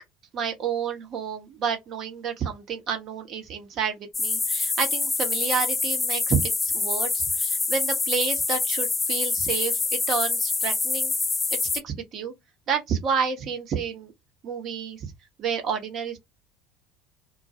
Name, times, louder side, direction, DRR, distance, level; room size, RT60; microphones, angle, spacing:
voice 1, 0.3-11.1 11.5-11.6 11.8-12.3 12.7-14.1 14.4-15.1 15.4-16.2, right 6 dB, 45° right, 0.9 m, -30 dB
sound 1, 4.1-11.8, left 4 dB, 20° left, 0.3 m, -26 dB
2.3 x 2.2 x 2.7 m
figure-of-eight pair, 65°, 0 cm